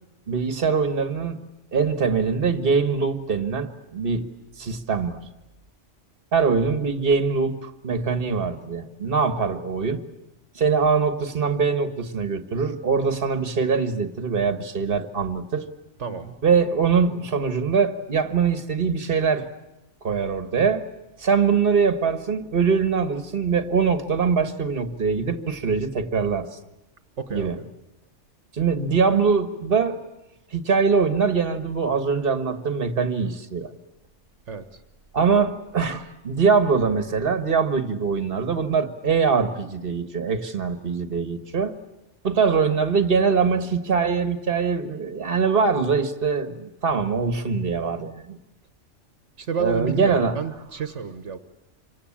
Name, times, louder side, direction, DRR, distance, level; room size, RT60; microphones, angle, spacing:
voice 1, 0.3-1.4 1.7-4.3 4.6-5.2 6.3-10.0 10.5-15.7 16.4-19.5 20.0-20.9 21.2-26.5 27.3-27.6 28.5-30.0 30.5-33.7 35.1-41.8 42.2-48.4 49.6-50.4, right 5 dB, 50° right, 1.7 m, -23 dB
voice 2, 16.0-16.3 27.2-27.6 34.5-34.6 49.4-51.4, right 6 dB, 75° right, 1.5 m, -30 dB
27.0 x 24.5 x 8.7 m
omnidirectional pair, 1.2 m